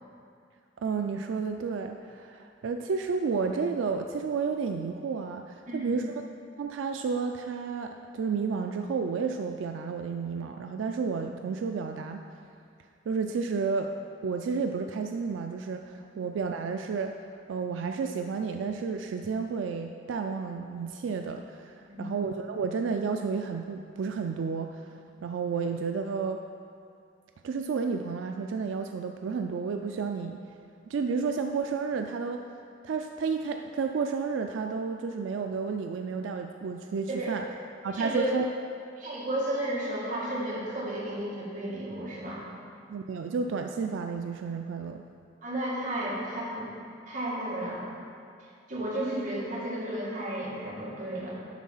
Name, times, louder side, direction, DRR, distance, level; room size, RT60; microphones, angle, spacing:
voice 1, 0.8-6.1 6.6-12.2 13.1-13.9 14.2-17.1 17.5-24.9 25.2-26.4 27.4-30.4 30.9-32.4 32.8-37.4 37.8-38.5 42.9-45.0, right 5 dB, 90° right, 5 dB, 0.4 m, -31 dB
voice 2, 5.7-6.0 21.9-22.2 37.1-37.4 37.9-38.3 39.0-42.4 45.4-46.7 47.1-47.8 48.7-51.3, right 1 dB, 45° right, -7 dB, 2.1 m, -33 dB
11.0 x 3.7 x 5.6 m, 2.4 s
head